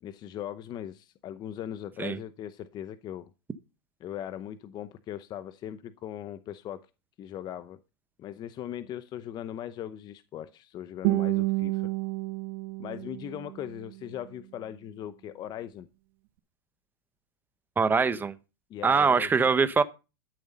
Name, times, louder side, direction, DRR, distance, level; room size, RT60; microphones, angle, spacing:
voice 1, 0.0-3.3 4.0-6.9 7.2-7.8 8.2-11.9 12.8-15.9 18.7-19.5, left 11 dB, 35° left, 0.8 m, -39 dB
Guitar, 11.0-14.1, right 20 dB, 60° right, 1.1 m, -30 dB
voice 2, 17.8-18.3 18.8-19.8, right 5 dB, 15° right, 1.0 m, -23 dB
13.0 x 7.1 x 5.4 m
supercardioid pair, 120°, 13 cm